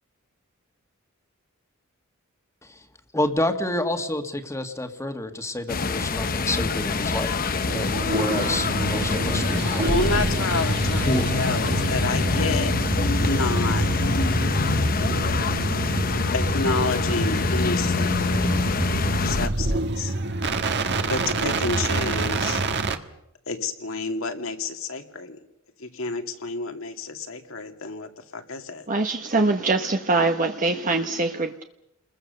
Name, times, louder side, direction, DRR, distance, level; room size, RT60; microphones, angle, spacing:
voice 1, 3.1-7.4 7.7-10.2 11.1-11.3, left 1 dB, 15° left, 7 dB, 1.8 m, -28 dB
sound 1, 5.7-19.5, left 3 dB, 45° left, 0.9 m, -25 dB
sound 2, 7.7-23.0, right 2 dB, 55° right, 1.6 m, -27 dB
voice 2, 9.9-12.7 13.2-13.9 16.3-18.5 19.2-20.1 21.1-22.6 23.5-25.4 25.8-28.9, left 3 dB, 70° left, 6 dB, 2.4 m, -29 dB
voice 3, 28.9-31.6, right 3 dB, 40° right, 5 dB, 1.1 m, -23 dB
28.5 x 21.5 x 6.8 m, 0.84 s
head